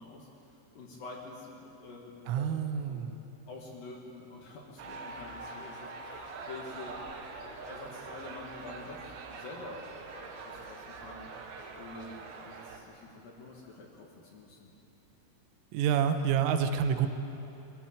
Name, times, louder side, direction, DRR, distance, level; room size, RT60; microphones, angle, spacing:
voice 1, 0.0-2.5 2.9-3.0 3.5-7.0 7.4-11.3 11.7-14.7, left 2 dB, 55° left, -1 dB, 2.9 m, -47 dB
voice 2, 2.3-3.1 15.7-17.1, right 8 dB, 90° right, 8 dB, 3.5 m, -28 dB
sound 1, 4.8-12.8, right 3 dB, 65° right, 2.7 m, -44 dB
23.0 x 14.5 x 7.8 m, 3.0 s
omnidirectional pair, 5.6 m